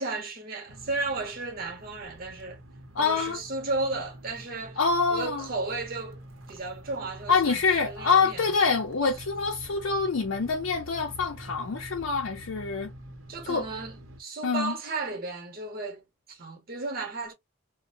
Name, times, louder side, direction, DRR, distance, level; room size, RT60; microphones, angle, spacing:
voice 1, 0.0-2.6 3.0-4.8 5.1-6.2 6.5-8.7 13.3-17.3, right 3 dB, 50° right, 1.0 m, -34 dB
sound 1, 0.7-14.2, equal, 85° right, 0.7 m, -46 dB
voice 2, 3.0-3.4 4.8-5.5 7.3-12.9 13.5-13.6 14.4-14.8, left 4 dB, 75° left, 0.5 m, -26 dB
2.6 x 2.1 x 2.5 m
head